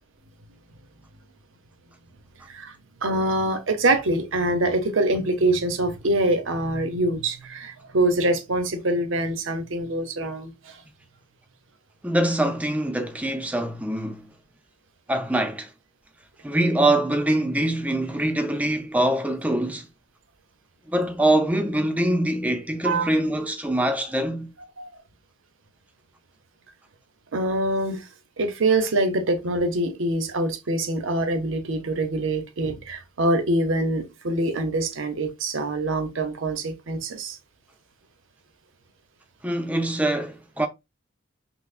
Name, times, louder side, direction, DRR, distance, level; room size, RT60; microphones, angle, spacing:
voice 1, 3.0-10.8 22.8-23.1 24.8-24.9 27.3-28.1 28.4-37.4, right 2 dB, 75° right, 0.7 m, -24 dB
voice 2, 12.0-14.3 15.1-15.7 16.4-19.9 20.9-24.5 39.4-40.7, right 1 dB, 5° right, 0.4 m, -24 dB
5.6 x 2.0 x 2.5 m
head